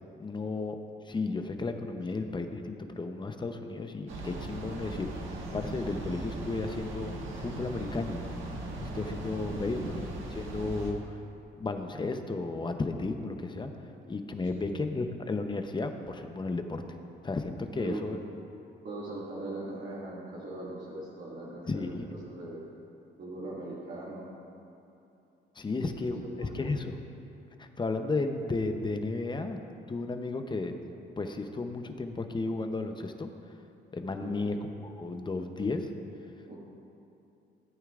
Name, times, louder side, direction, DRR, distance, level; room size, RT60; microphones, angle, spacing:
voice 1, 0.2-0.8 1.1-8.3 8.8-9.9 10.3-11.2 11.6-13.7 14.1-16.8 17.2-18.2 21.7-22.2 25.6-26.9 27.6-29.6 29.9-30.8 31.2-33.3 33.9-35.9, left 3 dB, 25° left, 6 dB, 0.8 m, -33 dB
sound 1, 4.1-10.9, right 2 dB, 80° right, 1.5 m, -39 dB
voice 2, 9.5-10.0 14.5-14.7 17.7-18.2 18.8-22.6 23.2-24.3 25.9-26.7 34.2-34.5 36.5-36.6, right 2 dB, 65° right, -9 dB, 2.3 m, -40 dB
16.5 x 9.1 x 2.5 m, 2.7 s
cardioid pair, 90°, 20 cm